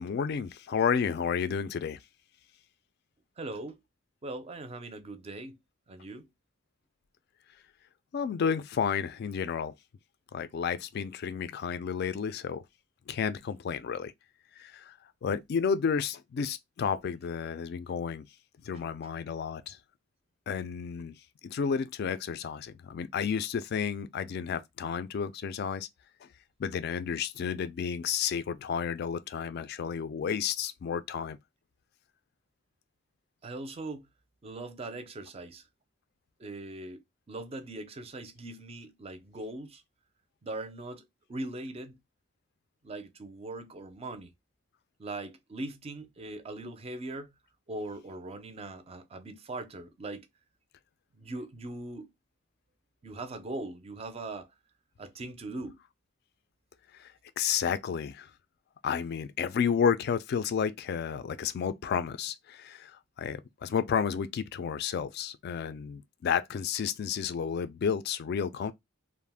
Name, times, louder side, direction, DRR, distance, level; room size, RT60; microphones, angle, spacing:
voice 1, 0.0-2.0 8.1-9.7 10.3-12.6 13.1-14.1 14.6-18.3 18.6-19.8 20.5-21.2 21.4-25.9 26.2-26.3 26.6-31.4 56.9-58.3 58.8-68.7, left 7 dB, 55° left, 0.3 m, -31 dB
voice 2, 3.4-3.8 4.2-5.6 5.9-6.3 19.0-19.1 33.4-34.1 34.4-35.6 36.4-39.8 40.4-42.0 42.8-44.3 45.0-47.3 47.7-50.3 51.1-52.1 53.0-54.5 55.0-55.8, right 2 dB, 30° right, 0.4 m, -40 dB
2.4 x 2.1 x 3.3 m
head